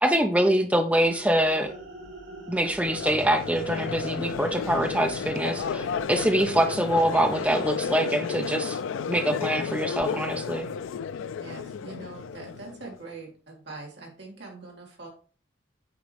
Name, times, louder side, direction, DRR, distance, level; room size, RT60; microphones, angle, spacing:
voice 1, 0.0-1.7 2.5-8.8 9.1-10.7, right 1 dB, 5° right, 5 dB, 0.6 m, -24 dB
sound 1, 1.0-8.5, right 2 dB, 75° right, 1.9 m, -43 dB
Crowd, 2.8-13.0, left 6 dB, 75° left, 0.3 m, -32 dB
voice 2, 11.3-15.1, right 3 dB, 55° right, -1 dB, 2.1 m, -43 dB
8.3 x 3.8 x 3.2 m, 0.41 s
head